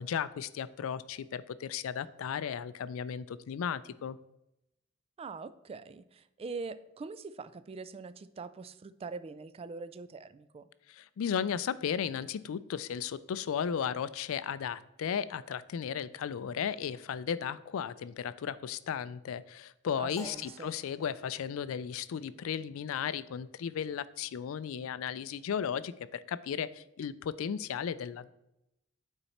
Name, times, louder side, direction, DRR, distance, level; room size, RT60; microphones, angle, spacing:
voice 1, 0.0-4.2 10.9-28.3, left 7 dB, 75° left, 16 dB, 0.3 m, -35 dB
voice 2, 5.2-10.7 20.0-20.7, right 4 dB, 30° right, 14 dB, 0.3 m, -43 dB
sound 1, 20.2-22.5, left 2 dB, 15° left, 1.0 m, -54 dB
8.8 x 4.1 x 4.2 m, 0.87 s
head